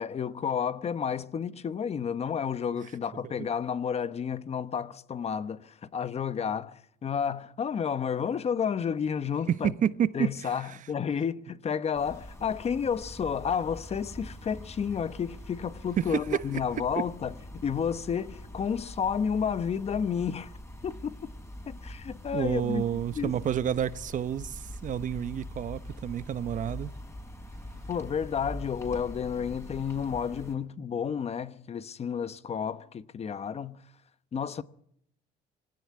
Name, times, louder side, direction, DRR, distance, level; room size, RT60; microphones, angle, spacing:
voice 1, 0.0-9.7 10.1-20.5 20.8-21.3 21.7-22.8 23.1-23.3 27.9-33.8 34.3-34.6, left 7 dB, 40° left, 1.0 m, -31 dB
voice 2, 9.5-10.5 16.0-16.5 22.3-26.9, right 9 dB, 50° right, 0.9 m, -29 dB
sound 1, 11.9-30.5, left 1 dB, 15° left, 4.5 m, -44 dB
22.0 x 17.5 x 9.6 m
cardioid pair, 110°, 17 cm